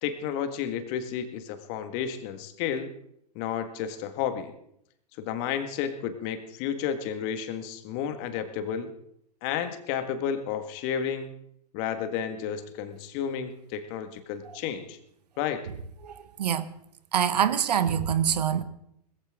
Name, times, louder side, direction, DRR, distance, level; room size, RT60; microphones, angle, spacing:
voice 1, 0.0-2.9 3.4-4.5 5.2-8.9 9.4-11.3 11.7-15.0 15.4-15.7, left 8 dB, 45° left, 1.9 m, -32 dB
voice 2, 17.1-18.6, right 8 dB, 75° right, 1.4 m, -24 dB
20.0 x 15.0 x 3.8 m
hypercardioid pair, 115°, 21 cm